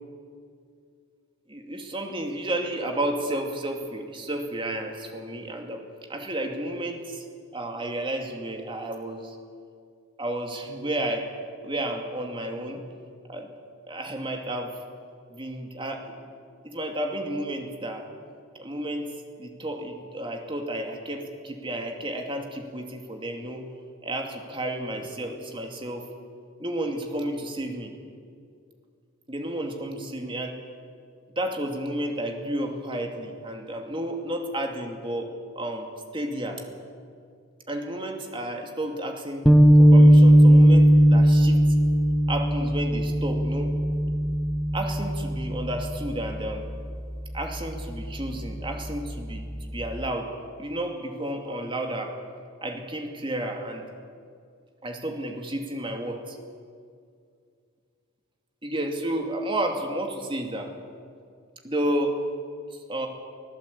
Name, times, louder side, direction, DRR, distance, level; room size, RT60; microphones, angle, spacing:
voice 1, 1.5-7.2 7.5-9.4 10.2-11.3 11.6-12.8 13.3-13.5 13.9-14.8 15.3-16.1 16.6-18.1 18.5-23.7 24.0-26.1 26.6-27.9 29.3-30.6 31.4-36.6 37.7-39.5 39.8-41.6 42.3-43.7 44.7-46.7 47.3-50.3 50.6-52.2 52.6-53.9 54.8-56.4 58.6-60.7 61.6-62.2 62.7-63.1, right 1 dB, 25° right, 3 dB, 2.5 m, -32 dB
sound 1, 39.4-45.9, equal, ahead, 1.3 m, -17 dB
25.0 x 16.0 x 8.5 m, 2.3 s
head